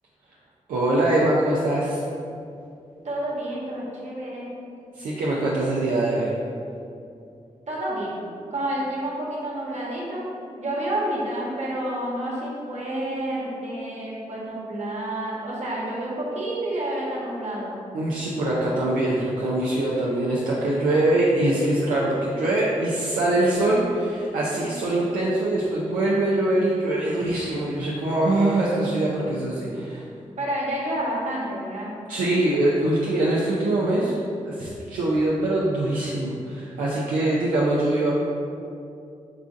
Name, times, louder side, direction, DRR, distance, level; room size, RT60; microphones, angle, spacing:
voice 1, 0.7-2.0 5.0-6.3 17.9-30.0 32.1-34.1 34.4-38.1, right 1 dB, 90° right, -6 dB, 0.4 m, -23 dB
voice 2, 3.0-4.5 7.7-8.2 8.5-10.3 10.6-17.8 30.4-31.9, right 1 dB, 60° right, -5 dB, 1.0 m, -29 dB
4.8 x 2.5 x 2.4 m, 2.5 s
cardioid pair, 45°, 13 cm